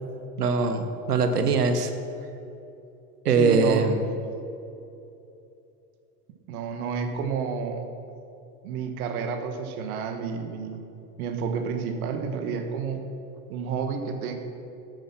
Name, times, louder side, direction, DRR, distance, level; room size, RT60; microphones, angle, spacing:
voice 1, 0.4-1.9 3.2-4.0, right 4 dB, 90° right, 8 dB, 1.1 m, -22 dB
voice 2, 3.3-3.9 6.5-7.9 8.6-10.8 11.2-13.0 13.5-14.3, right 6 dB, 70° right, 6 dB, 1.5 m, -30 dB
9.5 x 8.7 x 6.0 m, 2.8 s
hypercardioid pair, 90°, 45 cm